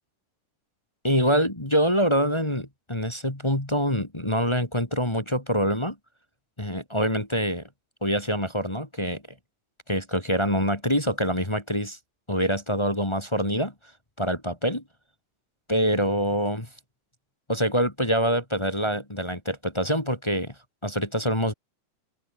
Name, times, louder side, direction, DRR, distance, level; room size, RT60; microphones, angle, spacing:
voice 1, 1.0-6.0 6.6-7.6 8.0-9.2 9.9-12.0 12.3-13.7 14.2-14.8 15.7-16.7 17.5-20.5 20.8-21.5, equal, 10° left, 1.7 m, -25 dB
open air
omnidirectional pair, 3.7 m